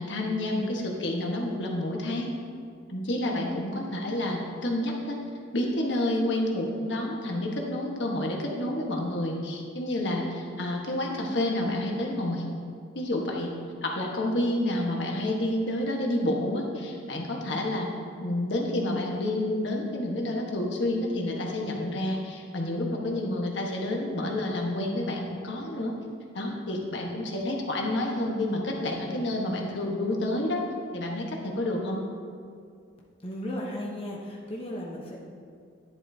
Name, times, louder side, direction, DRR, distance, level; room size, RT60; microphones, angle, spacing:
voice 1, 0.0-2.3 2.9-5.2 5.5-12.4 12.9-13.5 13.8-17.9 18.2-25.9 26.3-30.6 30.9-32.0, left 1 dB, 70° left, 0 dB, 1.4 m, -29 dB
voice 2, 33.2-35.2, left 1 dB, 30° left, -3 dB, 0.9 m, -35 dB
11.0 x 10.5 x 2.8 m, 2.2 s
head